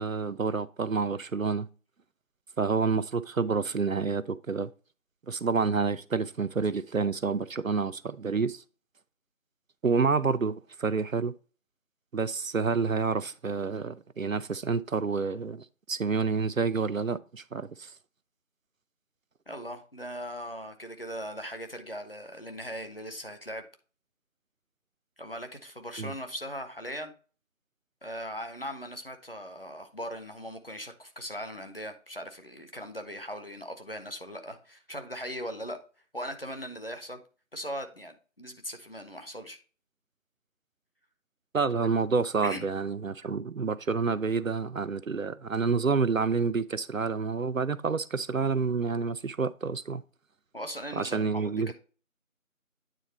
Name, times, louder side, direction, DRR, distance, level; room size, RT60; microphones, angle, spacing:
voice 1, 0.0-1.7 2.6-4.7 5.3-8.6 9.8-11.3 12.1-17.9 26.0-26.1 41.5-50.0 51.0-51.7, right 4 dB, 75° right, 0.6 m, -28 dB
voice 2, 19.5-23.6 25.2-27.1 28.0-35.8 36.1-37.2 37.5-39.6 42.4-42.7 50.5-51.7, equal, 45° left, 1.0 m, -39 dB
9.1 x 3.7 x 4.1 m
figure-of-eight pair, 175°, 41 cm